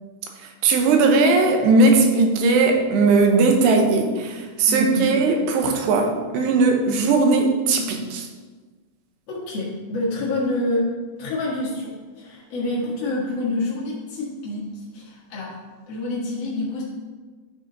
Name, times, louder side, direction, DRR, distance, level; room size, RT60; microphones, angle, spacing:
voice 1, 0.6-8.3, right 3 dB, 80° right, 3 dB, 3.0 m, -18 dB
voice 2, 4.7-5.2 9.3-10.9 11.2-15.6 15.9-16.8, left 2 dB, 55° left, -7 dB, 2.0 m, -27 dB
11.0 x 4.9 x 4.0 m, 1.4 s
omnidirectional pair, 4.9 m